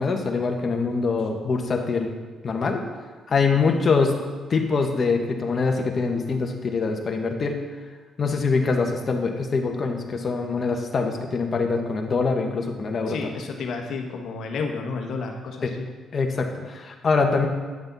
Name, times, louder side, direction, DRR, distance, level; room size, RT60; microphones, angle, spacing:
voice 1, 0.0-2.1 2.4-2.8 3.3-4.2 4.5-7.6 8.2-13.2 15.6-15.7 16.1-17.5, left 4 dB, 45° left, 3 dB, 1.2 m, -24 dB
voice 2, 13.1-15.9, left 4 dB, 70° left, 2 dB, 1.2 m, -31 dB
9.8 x 6.9 x 4.0 m, 1.4 s
cardioid pair, 90°, 0 cm